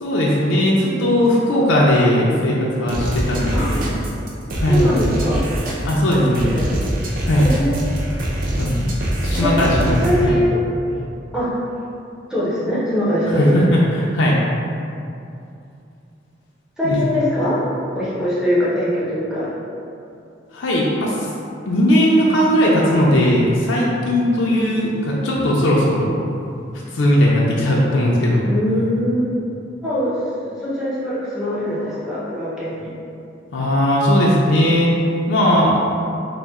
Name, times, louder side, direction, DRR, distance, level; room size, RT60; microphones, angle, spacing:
voice 1, 0.0-3.9 4.6-4.9 5.8-6.5 7.2-7.5 8.6-8.9 9.2-10.4 13.3-14.4 16.8-17.2 20.5-21.3 21.7-26.1 26.7-28.5 33.5-34.9 35.3-35.7, equal, 90° left, -5 dB, 0.5 m, -18 dB
sound 1, 2.9-10.3, right 1 dB, 45° right, 0.5 m, -24 dB
voice 2, 3.5-3.9 4.7-5.4 6.2-6.7 7.4-8.0 9.4-9.7 10.0-10.6 11.3-11.5 12.3-13.6 16.8-17.6 17.9-19.5 28.5-29.3 29.8-30.2 30.4-32.9, equal, 5° right, -10 dB, 0.7 m, -22 dB
4.1 x 2.1 x 3.5 m, 2.6 s
head